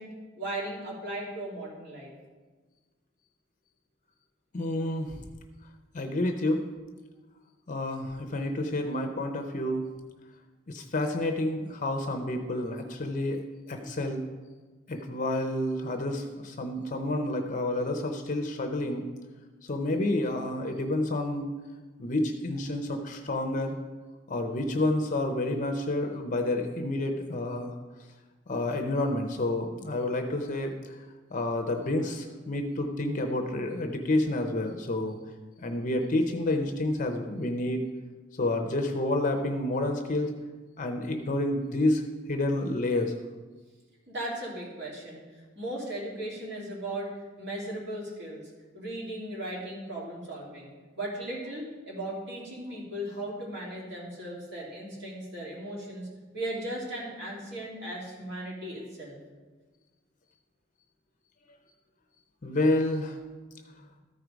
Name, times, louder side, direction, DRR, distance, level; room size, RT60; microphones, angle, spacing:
voice 1, 0.0-2.1 44.1-45.2 45.5-47.1 47.4-48.4 48.7-50.7 50.9-56.1 56.3-59.2, right 1 dB, 60° right, -4 dB, 2.8 m, -37 dB
voice 2, 4.5-5.2 5.9-6.6 7.7-9.8 10.7-13.4 13.7-14.2 14.9-19.0 19.6-21.5 22.0-23.7 24.3-27.7 28.5-31.0 31.3-35.2 35.6-37.8 38.4-40.3 40.8-42.0 42.3-43.1 62.4-63.2, left 1 dB, 40° left, 4 dB, 0.6 m, -29 dB
13.5 x 4.7 x 5.1 m, 1.3 s
head